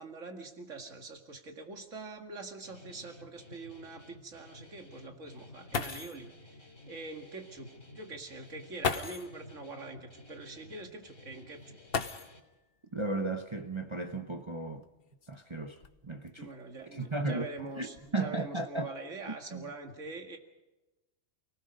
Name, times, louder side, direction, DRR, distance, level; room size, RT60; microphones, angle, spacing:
voice 1, 0.0-6.6 6.9-11.8 16.4-20.4, right 3 dB, 75° right, 2.4 m, -44 dB
sound 1, 1.8-1.9 2.3-2.4 3.0-3.1 5.4-5.5 5.7-6.3 7.6-7.7 8.8-9.4 11.9-12.6 14.0-14.1 14.8-16.3 17.0-17.3 17.7-18.1, left 5 dB, 50° left, 1.3 m, -36 dB
Guitar, 2.6-12.4, left 2 dB, 75° left, 4.1 m, -54 dB
voice 2, 12.9-14.9 15.3-16.5 16.9-18.9 19.5-19.7, right 2 dB, 25° right, 0.9 m, -35 dB
29.5 x 18.5 x 5.4 m
omnidirectional pair, 1.3 m